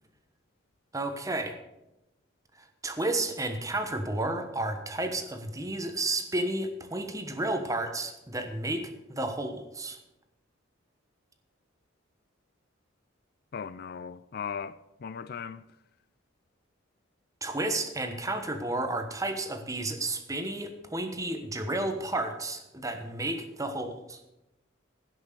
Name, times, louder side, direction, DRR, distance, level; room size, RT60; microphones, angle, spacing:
voice 1, 0.9-1.6 2.6-10.0 17.4-24.2, right 2 dB, 15° right, 1.2 m, -32 dB
voice 2, 13.5-15.6, left 6 dB, 50° left, 0.4 m, -38 dB
16.5 x 6.3 x 6.7 m
head